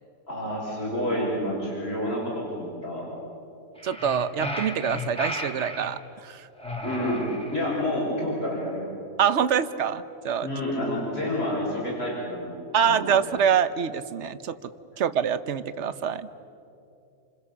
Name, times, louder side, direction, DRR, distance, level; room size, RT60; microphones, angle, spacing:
voice 1, 0.3-3.1 6.8-7.2 7.5-8.9 10.4-13.2, left 1 dB, 40° left, -4 dB, 6.4 m, -29 dB
sound 1, 3.8-5.9 6.6-7.8, left 1 dB, 5° left, 2.6 m, -34 dB
voice 2, 3.8-6.5 9.2-10.5 11.2-11.3 12.7-14.7 15.0-16.3, right 8 dB, 55° right, 13 dB, 1.1 m, -25 dB
29.0 x 27.5 x 6.9 m, 2.7 s
omnidirectional pair, 1.6 m